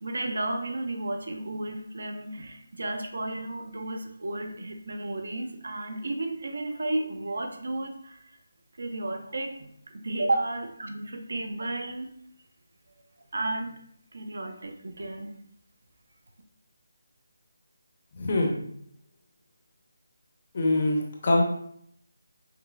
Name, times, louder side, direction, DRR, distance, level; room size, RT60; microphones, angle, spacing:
voice 1, 0.0-8.4 8.8-12.1 12.9-13.0 13.3-13.8 14.1-15.4, right 2 dB, 65° right, 5 dB, 0.5 m, -33 dB
voice 2, 18.1-18.6 20.5-21.4, left 2 dB, 35° left, 0 dB, 0.6 m, -24 dB
5.6 x 2.0 x 2.2 m, 0.67 s
figure-of-eight pair, 175°, 0 cm